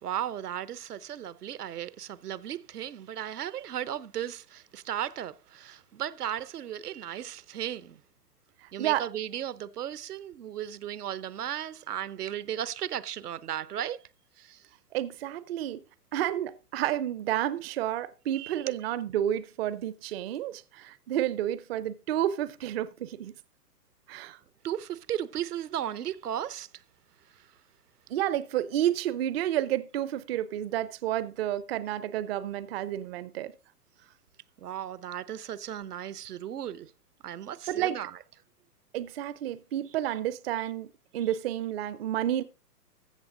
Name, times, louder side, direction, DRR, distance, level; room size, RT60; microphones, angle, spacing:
voice 1, 0.0-8.0 8.7-14.0 14.4-14.6 18.3-18.8 24.6-26.7 34.6-36.9 37.2-38.1, right 10 dB, 75° right, 0.8 m, -35 dB
voice 2, 8.6-9.0 14.9-15.8 16.1-23.3 24.1-24.4 28.1-33.5 37.7-38.0 38.9-42.4, right 12 dB, 40° right, 0.6 m, -30 dB
14.5 x 6.9 x 3.8 m
hypercardioid pair, 125°, 47 cm